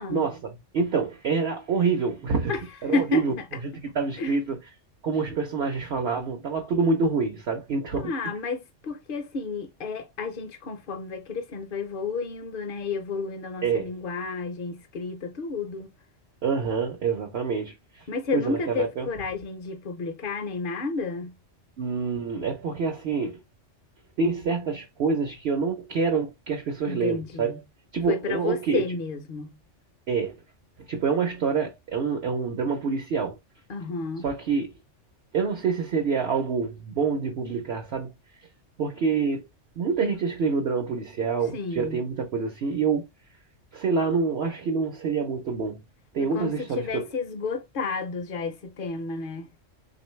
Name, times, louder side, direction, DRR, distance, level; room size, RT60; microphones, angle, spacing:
voice 1, 0.1-2.6 2.8-3.3 3.6-4.6 5.0-8.1 13.6-13.9 16.4-18.1 18.3-19.1 21.8-23.4 24.2-27.6 27.9-28.9 30.1-30.4 30.9-33.4 34.2-34.7 35.3-38.1 38.8-39.5 39.8-43.1 43.7-45.8 46.1-47.1, right 5 dB, 60° right, 0.9 m, -26 dB
voice 2, 2.9-3.3 4.2-4.3 8.0-15.9 18.1-21.3 26.9-27.6 28.1-29.6 33.7-34.3 41.5-42.0 46.2-49.5, left 4 dB, 55° left, 0.8 m, -31 dB
3.7 x 2.5 x 3.1 m
omnidirectional pair, 1.3 m